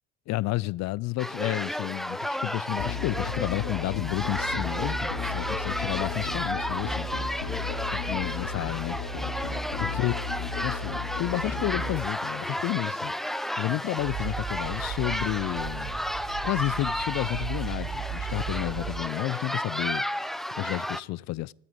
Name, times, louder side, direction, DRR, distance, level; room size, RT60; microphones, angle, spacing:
voice 1, 0.3-7.4 7.9-9.1 9.8-13.1 13.6-16.0 16.4-21.5, left 18 dB, 45° left, 0.5 m, -31 dB
sound 1, 1.2-21.0, equal, ahead, 0.7 m, -33 dB
Musical instrument, 2.8-12.0, left 4 dB, 65° left, 2.7 m, -34 dB
sound 2, 14.0-19.0, right 8 dB, 85° right, 6.2 m, -36 dB
13.5 x 9.6 x 9.6 m
hypercardioid pair, 65°, 38 cm